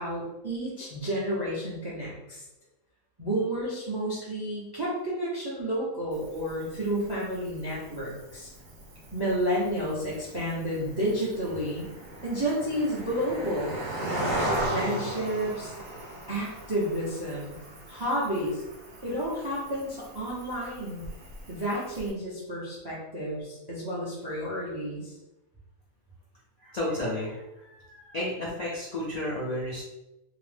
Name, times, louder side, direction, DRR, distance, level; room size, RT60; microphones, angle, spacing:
voice 1, 0.0-2.4 3.2-8.5 9.1-11.9 12.2-14.3 14.7-15.7 16.3-17.6 17.9-18.6 19.0-21.0 21.5-25.1, equal, 35° right, -6 dB, 0.4 m, -31 dB
Cricket, 6.1-22.1, right 1 dB, 70° right, 1.0 m, -38 dB
voice 2, 26.6-27.4 27.7-29.8, left 1 dB, 65° left, -6 dB, 0.4 m, -32 dB
2.8 x 2.0 x 3.2 m, 0.97 s
omnidirectional pair, 1.5 m